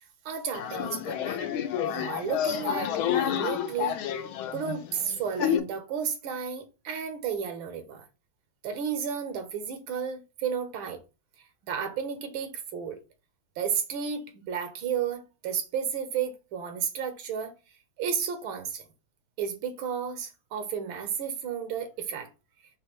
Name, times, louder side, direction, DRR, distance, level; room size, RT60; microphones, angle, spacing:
voice 1, 0.2-1.4 1.9-4.0 4.5-8.1 8.6-11.0 11.7-13.0 13.6-17.5 18.0-18.8 19.4-22.3, right 7 dB, 75° right, 1.5 m, -32 dB
sound 1, 0.5-5.6, left 10 dB, 85° left, 1.4 m, -29 dB
6.5 x 2.2 x 3.0 m
omnidirectional pair, 2.3 m